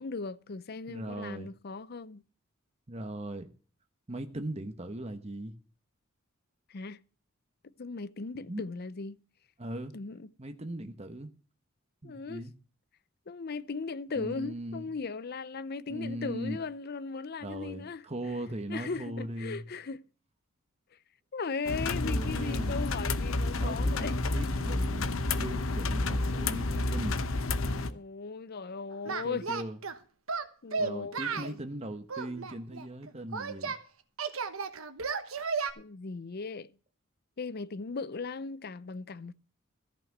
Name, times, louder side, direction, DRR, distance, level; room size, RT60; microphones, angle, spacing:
voice 1, 0.0-2.2 6.7-7.0 7.8-9.2 9.9-10.3 12.0-12.4 13.3-18.0 18.7-20.0 21.3-24.2 27.8-29.5 30.6-31.6 35.8-36.7 37.4-39.3, left 4 dB, 50° left, 0.6 m, -38 dB
voice 2, 0.9-1.5 2.9-3.5 4.1-5.5 8.5-8.6 9.6-9.9 10.4-11.3 12.0-12.5 14.2-14.9 15.9-16.6 17.4-19.7 22.0-22.8 23.6-27.2 29.0-29.8 30.8-33.8, right 1 dB, 30° right, 1.1 m, -39 dB
sound 1, 21.6-27.9, left 2 dB, 75° left, 0.9 m, -30 dB
Singing, 29.1-30.0 30.3-31.6 32.1-33.8 34.2-35.7, right 5 dB, 85° right, 1.2 m, -34 dB
14.0 x 5.9 x 7.9 m
head